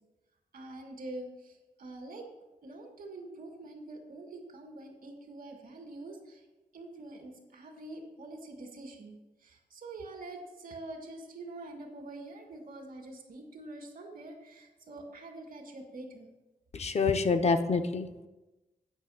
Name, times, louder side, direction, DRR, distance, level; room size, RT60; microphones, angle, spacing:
voice 1, 0.5-2.3 2.6-6.4 6.7-16.3, right 2 dB, 75° right, 2 dB, 1.9 m, -45 dB
voice 2, 16.7-18.3, left 4 dB, 45° left, 8 dB, 0.6 m, -27 dB
9.1 x 5.6 x 5.6 m, 1.1 s
wide cardioid pair, 155°, 15 cm